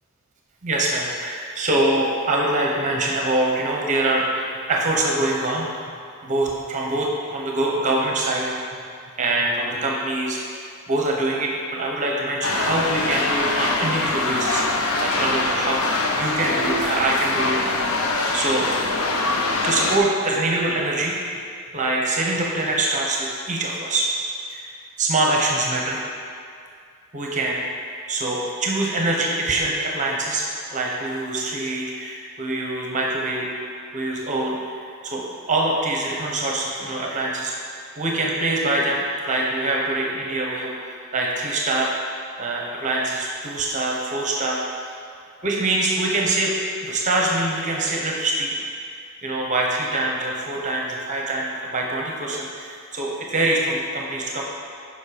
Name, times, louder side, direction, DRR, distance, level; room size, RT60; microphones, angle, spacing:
voice 1, 0.6-6.0 6.2-8.5 9.2-14.6 15.0-17.6 18.3-18.7 19.6-21.2 21.7-24.1 24.5-24.7 25.0-26.0 27.1-27.6 28.1-30.4 30.7-33.5 33.9-37.5 38.0-41.9 42.4-44.6 45.4-46.5 46.8-48.5 48.9-49.0 49.2-54.4, right 2 dB, 35° right, -1 dB, 0.8 m, -24 dB
sound 1, 12.4-20.0, left 2 dB, 85° left, 0.7 m, -23 dB
7.1 x 5.2 x 5.0 m, 2.3 s
head